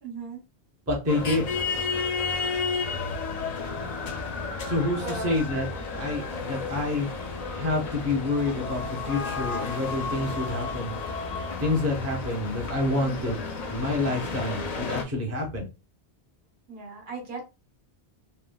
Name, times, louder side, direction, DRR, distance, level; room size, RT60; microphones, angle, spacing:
voice 1, 0.0-0.4 5.0-5.4 16.7-17.5, right 4 dB, 65° right, 0 dB, 1.1 m, -37 dB
voice 2, 0.9-1.5 4.7-7.1 7.5-10.9 11.6-13.4 13.7-15.7, left 2 dB, 15° right, 0 dB, 0.7 m, -28 dB
sound 1, 1.1-15.0, left 4 dB, 50° left, 0.5 m, -32 dB
3.4 x 2.1 x 2.2 m, 0.29 s
omnidirectional pair, 1.1 m